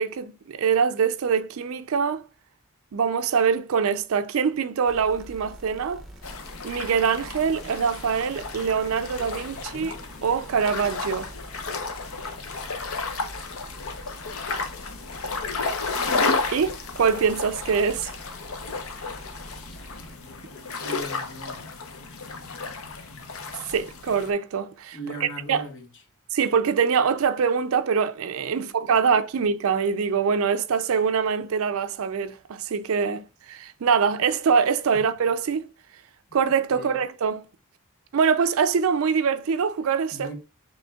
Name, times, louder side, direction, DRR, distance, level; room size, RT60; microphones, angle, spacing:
voice 1, 0.0-2.2 2.9-6.0 6.6-9.9 10.2-11.3 16.5-18.1 23.7-25.6 26.3-35.7 36.3-37.4 38.1-40.3, right 6 dB, 65° right, 0.4 m, -24 dB
sound 1, 4.8-20.2, equal, ahead, 0.7 m, -45 dB
sound 2, 6.2-24.3, left 4 dB, 70° left, 0.7 m, -32 dB
voice 2, 9.5-9.9 20.8-21.7 22.1-22.2 24.9-25.9 28.5-28.7 36.7-37.0 40.1-40.3, right 1 dB, 55° left, 1.1 m, -39 dB
7.0 x 3.2 x 2.3 m
head